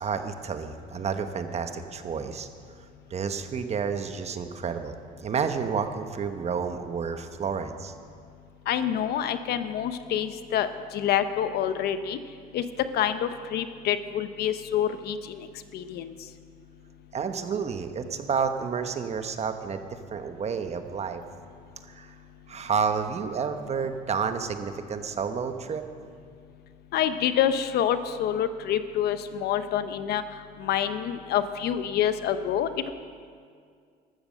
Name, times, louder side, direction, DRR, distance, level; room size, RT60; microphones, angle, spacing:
voice 1, 0.0-2.5 3.1-7.9 17.1-21.2 21.9-22.1 22.5-25.8, right 6 dB, 40° right, 8 dB, 1.1 m, -30 dB
voice 2, 8.7-12.2 12.5-12.6 12.9-15.5 15.7-16.1 26.9-30.2 30.6-32.9, left 9 dB, 70° left, 10 dB, 0.9 m, -27 dB
14.0 x 13.0 x 6.4 m, 2.2 s
cardioid pair, 110°, 17 cm